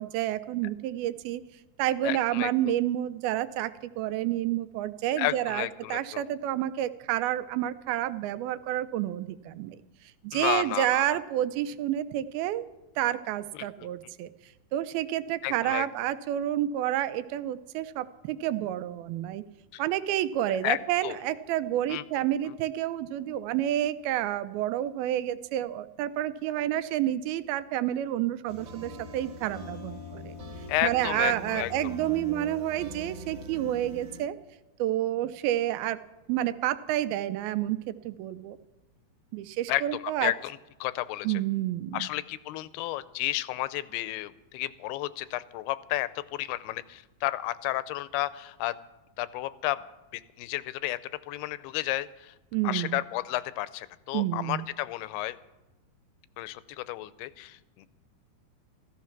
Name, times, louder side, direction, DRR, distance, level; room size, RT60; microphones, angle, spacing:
voice 1, 0.0-1.4 1.8-9.8 10.2-12.6 13.0-14.3 14.7-19.4 19.8-30.4 30.8-34.4 34.8-36.0 36.3-38.6 39.3-40.3 41.2-42.1 52.5-53.0 54.1-54.7, right 13 dB, 80° right, 13 dB, 2.4 m, -29 dB
voice 2, 2.0-2.5 5.2-6.2 10.3-11.2 13.5-14.1 15.4-15.9 19.7-19.8 20.6-21.2 21.9-22.0 30.7-31.7 39.7-41.4 41.9-48.7 49.2-49.8 50.1-51.0 51.3-52.3 52.6-55.4 56.4-57.9, left 16 dB, 85° left, 15 dB, 2.6 m, -32 dB
sound 1, 28.5-34.2, left 1 dB, 35° right, 2.4 m, -42 dB
15.0 x 14.5 x 5.9 m, 1.0 s
omnidirectional pair, 4.5 m